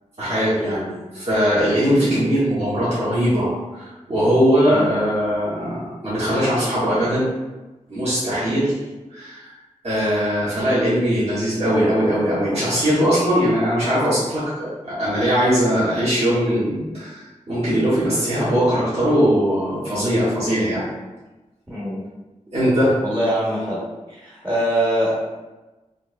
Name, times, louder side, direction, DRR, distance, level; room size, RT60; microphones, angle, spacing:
voice 1, 0.2-7.3 7.9-8.7 9.1-9.5 9.8-20.9 22.5-23.0, equal, 55° right, -12 dB, 1.5 m, -20 dB
voice 2, 4.7-5.0 21.7-22.0 23.0-23.8 24.1-25.1, equal, 20° right, -8 dB, 0.9 m, -23 dB
4.5 x 2.7 x 2.2 m, 1.1 s
wide cardioid pair, 100°, 13 cm